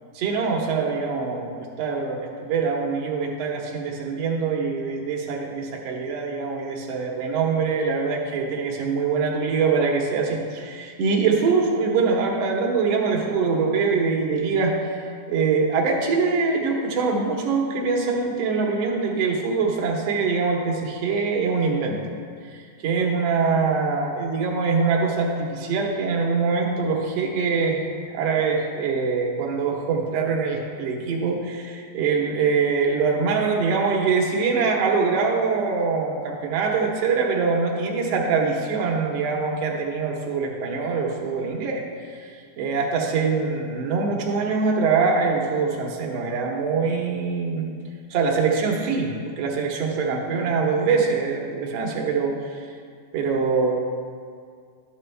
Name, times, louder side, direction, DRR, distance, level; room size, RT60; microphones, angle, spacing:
voice 1, 0.2-15.0 15.3-22.0 22.5-41.8 42.1-47.7 48.1-52.7 53.1-53.7, right 4 dB, 65° right, -1 dB, 1.9 m, -24 dB
12.0 x 7.0 x 3.3 m, 2.2 s
omnidirectional pair, 3.6 m